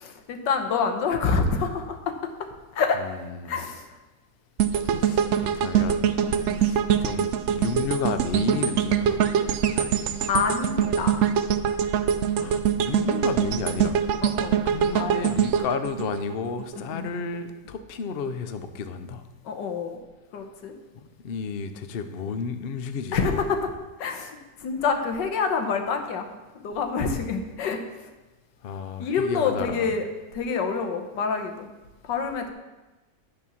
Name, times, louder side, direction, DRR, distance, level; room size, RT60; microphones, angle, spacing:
voice 1, 0.0-2.1 2.7-3.0 3.5-3.8 6.3-6.7 10.3-11.2 14.2-14.6 14.9-15.4 16.9-17.1 19.4-20.0 20.3-20.7 23.1-23.7 24.0-26.3 26.5-27.8 29.0-30.1 30.3-31.7 32.0-32.5, left 5 dB, 80° left, 5 dB, 1.7 m, -27 dB
voice 2, 3.0-3.7 4.8-6.1 6.5-9.2 12.3-14.0 14.6-19.2 21.2-23.4 28.6-29.9, left 5 dB, 65° left, 9 dB, 0.5 m, -32 dB
sound 1, 4.6-16.8 17.2-17.3, right 8 dB, 90° right, 0.6 m, -24 dB
11.0 x 4.4 x 7.1 m, 1.1 s
omnidirectional pair, 1.9 m